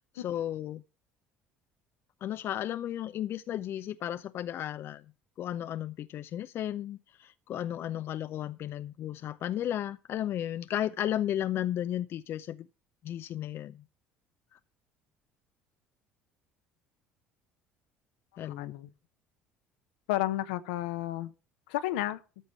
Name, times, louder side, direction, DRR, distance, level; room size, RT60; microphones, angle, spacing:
voice 1, 0.1-0.8 2.2-5.0 5.4-12.7 13.0-13.8 18.4-18.7, left 11 dB, 50° left, 0.5 m, -34 dB
voice 2, 18.4-18.9 20.1-21.3 21.7-22.2, left 14 dB, 75° left, 0.9 m, -32 dB
13.5 x 5.2 x 7.3 m
hypercardioid pair, 60°, 5 cm